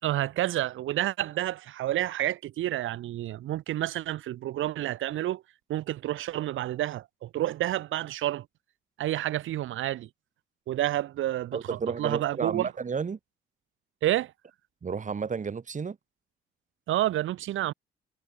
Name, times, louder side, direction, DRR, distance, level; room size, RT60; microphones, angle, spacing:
voice 1, 0.0-5.4 5.7-8.5 9.0-10.1 10.7-12.7 14.0-14.3 16.9-17.7, right 14 dB, 85° right, 5.2 m, -29 dB
voice 2, 11.5-13.2 14.8-16.0, right 5 dB, 40° right, 5.0 m, -32 dB
cardioid pair, 90°, 20 cm